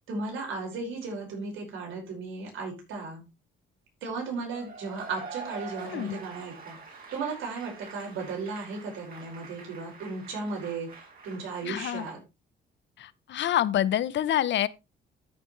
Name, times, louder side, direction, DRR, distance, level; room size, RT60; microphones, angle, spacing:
voice 1, 0.1-3.2 4.0-6.8 7.1-12.2, right 4 dB, 85° right, 5.1 m, -35 dB
Cheering / Applause / Crowd, 4.5-12.2, right 4 dB, 45° right, 5.8 m, -45 dB
voice 2, 5.8-6.2 11.6-12.1 13.0-14.7, left 11 dB, 65° left, 0.7 m, -27 dB
13.0 x 6.7 x 3.2 m
cardioid pair, 90°, 20 cm